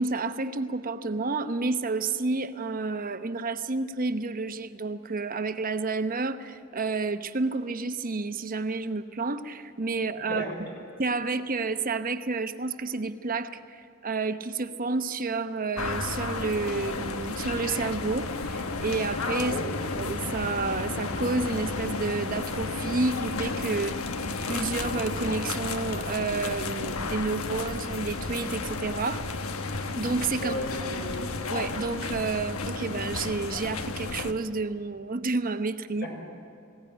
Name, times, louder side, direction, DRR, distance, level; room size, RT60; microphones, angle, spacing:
voice 1, 0.0-10.7 11.0-19.6 20.0-24.0 24.2-29.2 29.9-30.6 31.5-36.1, right 3 dB, 40° right, 10 dB, 0.9 m, -30 dB
sound 1, 15.8-34.3, left 3 dB, 90° left, 1.2 m, -32 dB
voice 2, 30.4-31.2 36.0-36.1, left 1 dB, 55° left, 0 dB, 6.1 m, -33 dB
20.0 x 17.5 x 9.9 m, 2.6 s
head